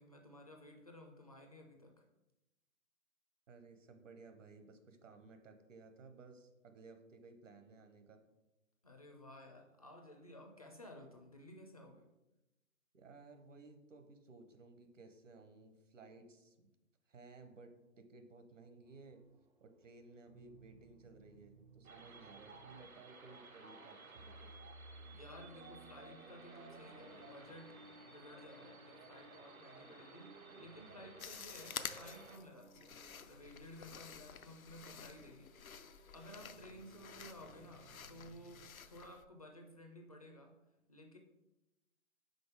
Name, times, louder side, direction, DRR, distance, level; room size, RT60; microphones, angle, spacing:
voice 1, 0.0-2.0 8.8-12.1 24.9-40.6 40.9-41.2, left 1 dB, 30° left, 3 dB, 0.4 m, -55 dB
voice 2, 3.5-8.2 12.9-16.7 17.1-19.2 19.6-24.5, right 3 dB, 65° right, 7 dB, 1.0 m, -58 dB
sound 1, 18.8-38.7, right 2 dB, 35° right, 0.5 m, -62 dB
sound 2, 21.8-32.4, right 3 dB, 85° right, 0.9 m, -56 dB
sound 3, 31.2-39.3, left 7 dB, 90° left, 0.5 m, -50 dB
5.3 x 3.9 x 4.8 m, 0.98 s
figure-of-eight pair, 135°, 41 cm